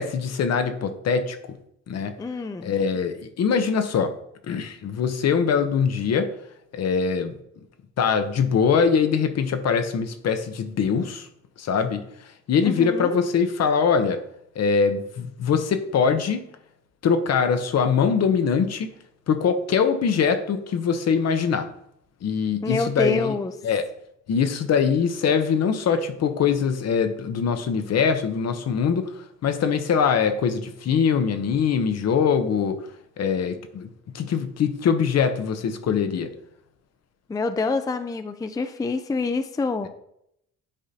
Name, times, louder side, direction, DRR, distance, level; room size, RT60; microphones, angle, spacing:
voice 1, 0.0-1.4 1.9-2.1 2.6-4.1 4.5-6.3 6.7-7.3 8.0-11.3 11.6-12.0 12.5-14.2 14.6-16.4 17.0-18.9 19.3-21.7 22.2-23.4 23.6-23.8 24.3-32.8 33.2-33.9 34.1-36.3, left 6 dB, 60° left, 9 dB, 0.8 m, -22 dB
voice 2, 2.2-2.7 12.6-13.2 22.6-23.5 37.3-39.9, left 4 dB, 10° left, 10 dB, 0.4 m, -26 dB
9.9 x 3.8 x 2.8 m, 0.75 s
cardioid pair, 90°, 30 cm